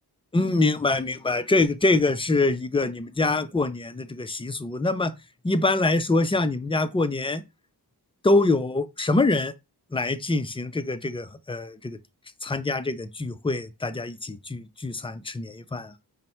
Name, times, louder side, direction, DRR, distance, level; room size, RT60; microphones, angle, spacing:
voice 1, 0.3-5.1 5.4-7.4 8.2-9.5 9.9-12.0 12.4-15.9, left 2 dB, 15° left, 0.4 m, -24 dB
5.2 x 2.1 x 4.4 m
cardioid pair, 55°, 40 cm